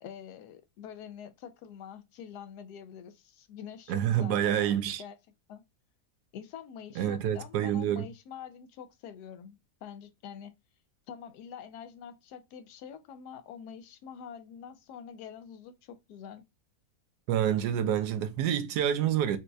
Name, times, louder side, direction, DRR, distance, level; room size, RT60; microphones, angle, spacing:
voice 1, 0.0-5.2 5.5-5.6 6.3-10.5 11.1-16.4, left 8 dB, 85° left, 1.1 m, -46 dB
voice 2, 3.9-5.0 7.0-8.0 17.3-19.4, right 10 dB, 90° right, 1.1 m, -27 dB
4.2 x 2.3 x 2.5 m
omnidirectional pair, 1.7 m